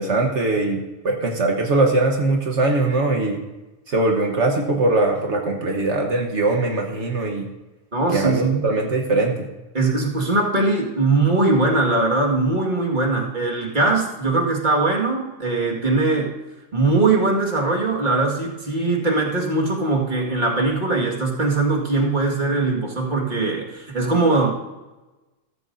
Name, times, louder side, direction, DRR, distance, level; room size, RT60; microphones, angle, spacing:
voice 1, 0.0-3.4 3.9-7.5 8.1-9.5, right 2 dB, 65° right, 2 dB, 1.5 m, -21 dB
voice 2, 7.9-8.7 9.7-16.4 16.7-24.5, right 3 dB, 40° right, 0 dB, 2.0 m, -21 dB
14.0 x 14.0 x 2.7 m, 1.1 s
omnidirectional pair, 1.3 m